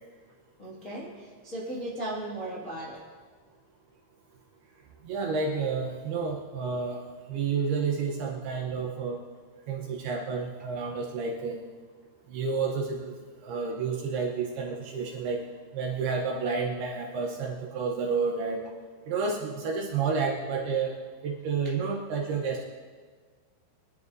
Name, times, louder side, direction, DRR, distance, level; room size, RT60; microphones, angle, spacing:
voice 1, 0.6-3.0 19.2-19.4, right 1 dB, 40° left, -6 dB, 1.1 m, -37 dB
voice 2, 5.0-7.0 7.3-9.2 9.7-11.6 12.3-13.2 13.4-15.4 15.7-18.6 19.1-21.0 21.2-22.6, right 5 dB, 75° right, 0 dB, 2.5 m, -30 dB
24.0 x 11.5 x 2.7 m, 1.5 s
omnidirectional pair, 5.5 m